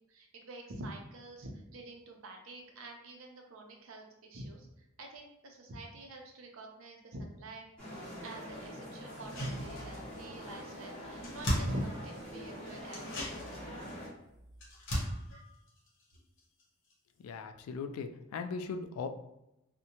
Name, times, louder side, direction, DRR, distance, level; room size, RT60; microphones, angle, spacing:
voice 1, 0.1-4.7 5.0-7.6 8.2-13.4, right 1 dB, 65° right, 1 dB, 0.5 m, -46 dB
sound 1, 7.8-14.1, equal, 10° left, 1.3 m, -44 dB
sound 2, 9.1-10.3 10.6-10.7 10.9-12.4 12.9-16.6 16.9-17.0, equal, 60° left, 0.8 m, -38 dB
voice 2, 17.2-19.1, left 5 dB, 85° left, 7 dB, 0.3 m, -39 dB
2.6 x 2.1 x 2.8 m, 0.86 s
head